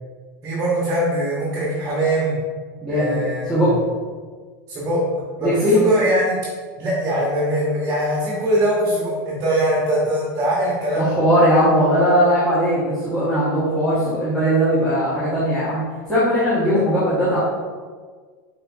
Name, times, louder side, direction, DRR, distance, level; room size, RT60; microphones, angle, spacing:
voice 1, 0.4-2.4 2.9-3.8 4.7-5.0 5.4-6.4 6.8-11.1 16.7-16.8, right 1 dB, 25° right, -5 dB, 1.1 m, -22 dB
voice 2, 2.8-3.2 3.5-3.7 5.4-5.8 11.0-15.8 16.1-17.4, equal, 5° left, -13 dB, 1.4 m, -19 dB
5.5 x 3.7 x 2.6 m, 1.5 s
supercardioid pair, 145°, 11 cm